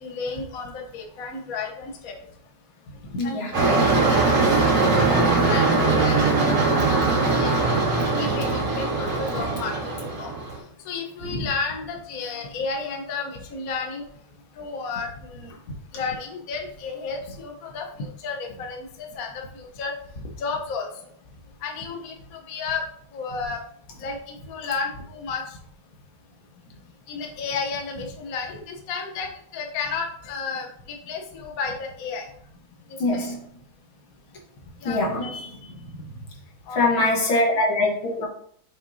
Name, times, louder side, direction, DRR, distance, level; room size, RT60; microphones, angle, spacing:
voice 1, 0.0-2.1 3.0-3.6 4.0-4.7 5.5-7.8 8.2-10.3 10.8-14.1 14.5-15.5 15.9-20.9 21.6-22.8 23.1-23.6 24.0-25.6 27.1-32.2 32.9-33.2 34.8-35.3 36.7-36.9, left 4 dB, 55° left, 1.2 m, -32 dB
voice 2, 3.2-3.5 33.0-33.4 34.9-35.5 36.8-38.3, left 2 dB, 75° left, 2.3 m, -23 dB
sound 1, 3.5-10.6, right 3 dB, 50° right, 2.3 m, -21 dB
6.8 x 5.4 x 2.7 m
omnidirectional pair, 2.3 m